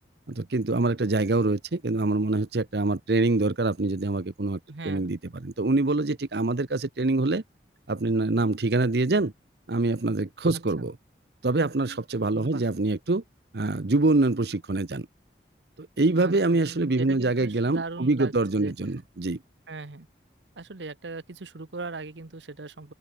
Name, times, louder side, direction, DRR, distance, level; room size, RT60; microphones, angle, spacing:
voice 1, 0.3-4.6 4.8-7.4 7.9-9.3 9.7-10.9 11.4-13.2 13.5-15.1 15.8-19.4, right 2 dB, 65° right, 0.9 m, -25 dB
voice 2, 4.7-5.1 10.8-10.9 12.3-12.6 16.2-18.7 19.7-20.1 20.6-22.9, right 3 dB, 85° right, 1.1 m, -39 dB
open air
head